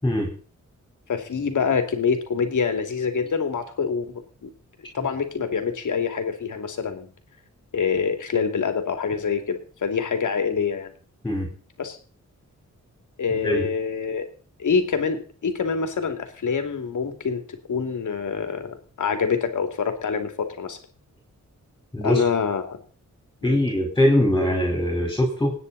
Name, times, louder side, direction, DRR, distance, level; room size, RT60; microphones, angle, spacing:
voice 1, 1.1-4.5 4.9-7.1 7.7-10.9 11.8-12.0 13.2-14.3 14.6-17.4 17.7-20.8 22.0-22.8 23.4-23.6, left 6 dB, 85° left, 6 dB, 2.8 m, -26 dB
voice 2, 21.9-22.2 23.4-25.5, left 1 dB, 10° left, 1 dB, 4.4 m, -21 dB
26.5 x 9.7 x 4.2 m, 0.42 s
wide cardioid pair, 150°, 30 cm